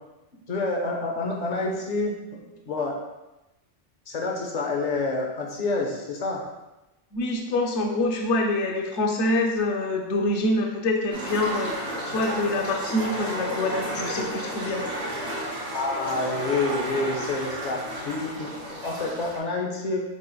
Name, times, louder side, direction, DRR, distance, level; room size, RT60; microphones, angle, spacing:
voice 1, 0.5-3.0 4.1-6.4 15.7-18.5 18.8-20.0, left 3 dB, 50° left, 0 dB, 0.5 m, -28 dB
voice 2, 7.1-14.8, left 2 dB, 80° left, 1 dB, 0.9 m, -26 dB
sound 1, 11.1-19.4, equal, 40° right, 0.6 m, -32 dB
3.6 x 3.2 x 2.2 m, 1.0 s
omnidirectional pair, 1.2 m